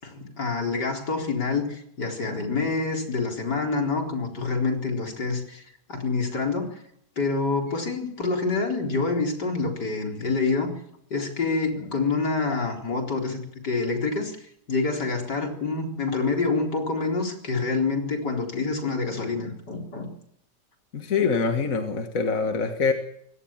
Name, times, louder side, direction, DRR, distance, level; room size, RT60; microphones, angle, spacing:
voice 1, 0.0-6.8 7.2-10.7 11.1-14.4 14.7-20.1, left 4 dB, 75° left, 2 dB, 4.8 m, -27 dB
voice 2, 20.9-22.9, left 5 dB, 50° left, 6 dB, 2.0 m, -24 dB
23.0 x 18.0 x 7.5 m, 0.71 s
omnidirectional pair, 1.8 m